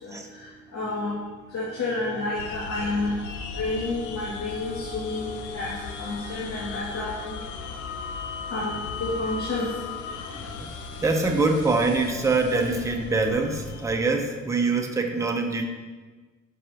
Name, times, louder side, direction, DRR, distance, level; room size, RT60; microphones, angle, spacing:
voice 1, 0.0-0.5 0.7-1.2 1.5-3.2 3.6-7.4 8.5-8.7 9.0-9.7, left 2 dB, 60° left, -8 dB, 2.3 m, -30 dB
sound 1, 2.3-14.0, left 5 dB, 80° left, 0.8 m, -37 dB
voice 2, 11.0-15.6, right 3 dB, 10° right, 2 dB, 0.9 m, -24 dB
10.5 x 6.1 x 3.0 m, 1.3 s
cardioid pair, 90°, 30 cm